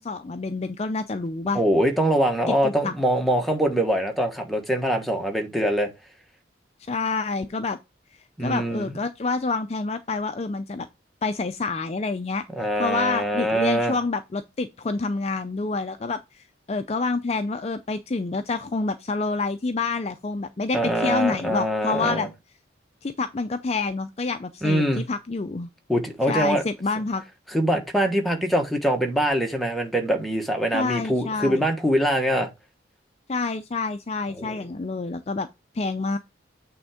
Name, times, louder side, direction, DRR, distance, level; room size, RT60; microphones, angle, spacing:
voice 1, 0.0-1.6 2.5-2.9 6.9-7.8 8.4-10.9 11.2-12.4 12.8-22.3 23.0-25.7 26.3-27.2 30.7-31.6 33.3-35.5 35.7-36.2, left 3 dB, 35° left, 0.4 m, -28 dB
voice 2, 1.5-5.9 8.4-8.9 12.6-14.0 20.7-22.3 24.6-25.0 25.9-26.6 27.5-32.5 34.3-34.6, equal, ahead, 1.3 m, -23 dB
8.6 x 3.5 x 4.9 m
head